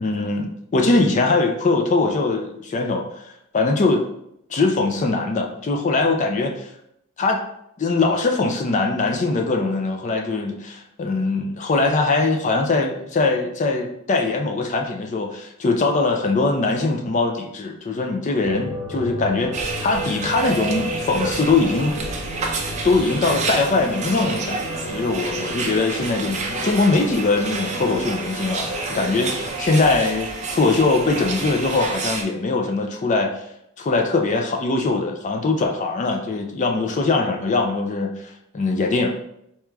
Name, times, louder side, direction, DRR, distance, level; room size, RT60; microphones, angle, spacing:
voice 1, 0.0-3.3 3.5-4.0 4.5-6.7 7.2-7.4 7.8-22.0 22.3-22.6 22.8-33.3 33.8-39.2, left 3 dB, 35° left, 3 dB, 0.4 m, -21 dB
sound 1, 18.4-29.5, right 1 dB, 80° left, 0.8 m, -33 dB
sound 2, 19.5-32.2, right 3 dB, 35° right, 0.5 m, -29 dB
4.5 x 2.9 x 2.3 m, 0.77 s
head